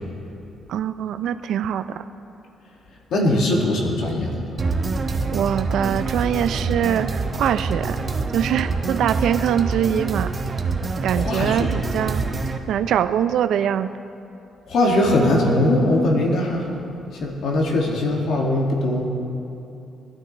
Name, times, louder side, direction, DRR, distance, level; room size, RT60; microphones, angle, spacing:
voice 1, 0.7-2.0 5.3-8.0 8.3-10.3 11.0-12.2 12.7-13.9, right 9 dB, 75° right, 11 dB, 0.5 m, -23 dB
voice 2, 3.1-4.4 11.2-11.7 14.7-16.7 17.2-19.1, left 1 dB, 75° left, -1 dB, 2.3 m, -20 dB
sound 1, 4.6-12.6, right 3 dB, 35° right, 1.1 m, -26 dB
24.0 x 11.5 x 3.4 m, 2.8 s
cardioid pair, 90°, 0 cm